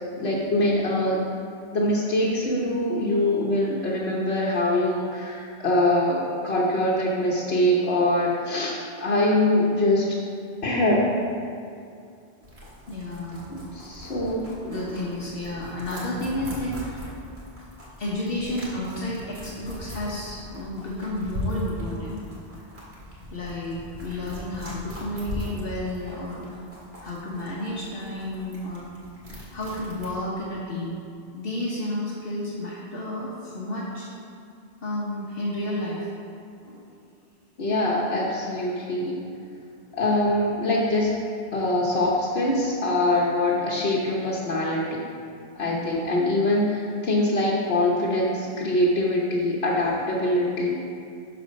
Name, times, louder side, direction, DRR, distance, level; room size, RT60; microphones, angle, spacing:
voice 1, 0.2-1.2 1.7-10.1 10.6-11.1 13.7-14.5 37.6-39.2 39.9-41.2 41.5-45.0 45.5-50.7, left 1 dB, 85° left, -5 dB, 1.3 m, -23 dB
sound 1, 12.4-30.2, left 1 dB, 85° right, 2.2 m, -39 dB
voice 2, 12.9-13.5 14.6-17.2 18.0-22.2 23.3-26.6 27.0-28.9 29.5-31.0 31.3-34.1 34.8-36.1 36.6-36.8 43.5-43.6 45.7-46.0, left 1 dB, 65° left, -5 dB, 1.4 m, -31 dB
12.0 x 4.4 x 5.2 m, 2.4 s
omnidirectional pair, 1.0 m